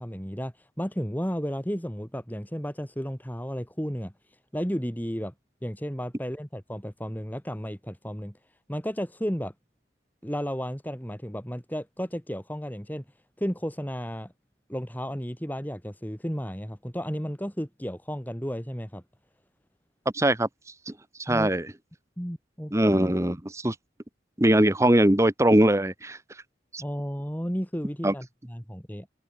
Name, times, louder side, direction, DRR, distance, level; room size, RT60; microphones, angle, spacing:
voice 1, 0.0-4.1 4.5-5.3 5.6-8.4 8.7-9.5 10.2-13.0 13.4-14.3 14.7-19.0 21.3-21.5 22.2-22.7 26.8-29.1, equal, 10° left, 6.1 m, -33 dB
voice 2, 20.1-20.5 20.9-21.0 21.2-21.7 22.7-23.7 24.4-26.2 26.7-26.8 28.0-28.1, right 1 dB, 15° right, 1.2 m, -21 dB
head